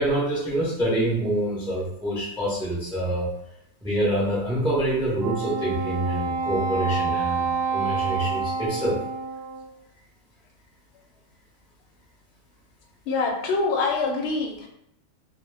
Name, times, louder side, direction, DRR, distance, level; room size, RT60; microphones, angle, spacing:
voice 1, 0.0-3.3 3.8-9.0, right 1 dB, 5° right, -7 dB, 0.5 m, -26 dB
Wind instrument woodwind instrument, 5.2-9.8, right 4 dB, 85° right, 1.1 m, -28 dB
voice 2, 13.1-14.7, left 3 dB, 65° left, 1 dB, 0.8 m, -25 dB
2.2 x 2.2 x 3.2 m, 0.78 s
omnidirectional pair, 1.4 m